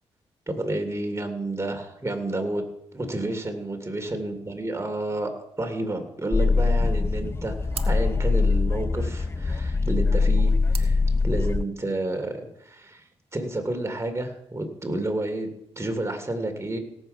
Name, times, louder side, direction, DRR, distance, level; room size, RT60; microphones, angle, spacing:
voice 1, 0.5-2.6 2.9-5.3 5.6-7.5 7.9-13.0 13.3-15.5 15.8-16.8, right 2 dB, 25° right, 5 dB, 2.9 m, -30 dB
sound 1, 6.3-11.6, left 4 dB, 20° left, 0.5 m, -23 dB
sound 2, 7.0-12.0, right 5 dB, 60° right, 1.5 m, -45 dB
17.5 x 7.6 x 5.6 m, 0.80 s
cardioid pair, 70°, 11 cm